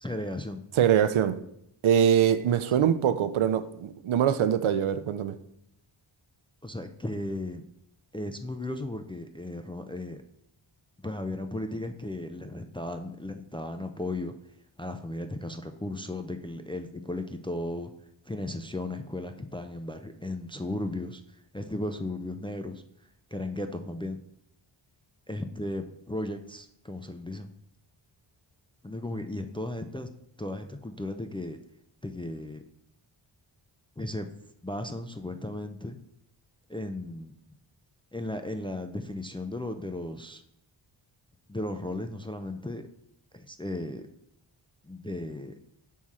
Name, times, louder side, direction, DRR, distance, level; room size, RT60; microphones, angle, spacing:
voice 1, 0.0-0.6 2.7-2.9 6.6-7.6 8.1-10.2 11.0-14.4 14.8-17.9 18.3-22.8 23.3-24.2 25.3-27.5 28.8-30.1 30.4-31.6 32.0-32.6 34.0-34.3 34.6-36.0 36.7-37.3 38.1-40.4 41.5-42.9 43.3-44.1 44.8-45.5, left 1 dB, 10° left, 0.3 m, -35 dB
voice 2, 0.8-1.4 1.8-5.3, right 9 dB, 75° right, 0.6 m, -23 dB
6.1 x 3.7 x 4.2 m
wide cardioid pair, 70°, 50 cm